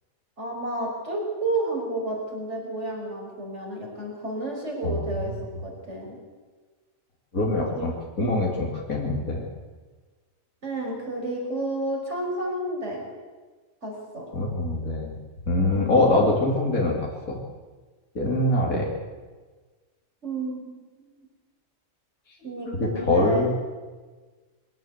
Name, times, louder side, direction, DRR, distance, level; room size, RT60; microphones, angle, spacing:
voice 1, 0.4-5.3 5.6-6.2 7.6-7.9 8.2-8.4 10.6-13.0 13.8-14.3 15.6-15.8 20.2-21.1 22.4-23.4, right 2 dB, 55° right, 0 dB, 6.0 m, -31 dB
voice 2, 7.3-9.5 14.3-15.2 15.5-17.4 18.1-18.9 22.8-23.5, left 2 dB, 85° left, -1 dB, 3.3 m, -24 dB
22.5 x 17.5 x 8.1 m, 1.4 s
omnidirectional pair, 1.4 m